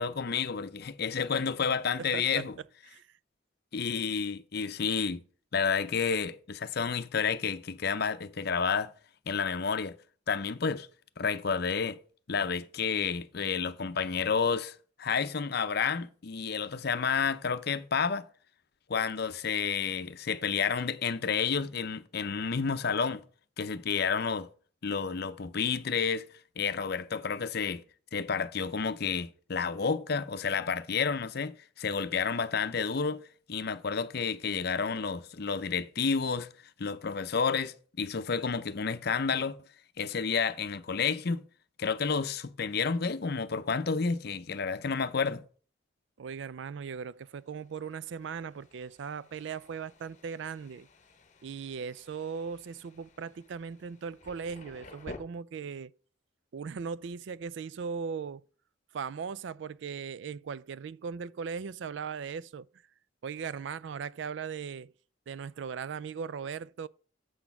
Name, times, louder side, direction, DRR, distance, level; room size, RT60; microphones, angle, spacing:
voice 1, 0.0-2.5 3.7-5.2 5.5-8.9 9.3-9.9 10.3-10.9 11.2-12.0 12.3-18.3 18.9-23.2 23.6-24.5 24.8-26.3 26.6-27.8 28.1-33.2 33.5-36.5 36.8-39.6 40.0-41.4 41.8-45.4, left 5 dB, 55° left, 0.6 m, -30 dB
voice 2, 2.1-2.4 2.9-3.1 46.2-50.9 51.4-55.9 56.5-58.4 58.9-62.7 63.2-64.9 65.3-66.9, right 6 dB, 65° right, 0.3 m, -38 dB
Thunder, 47.0-55.2, left 2 dB, 40° left, 1.0 m, -53 dB
7.7 x 6.2 x 5.8 m
head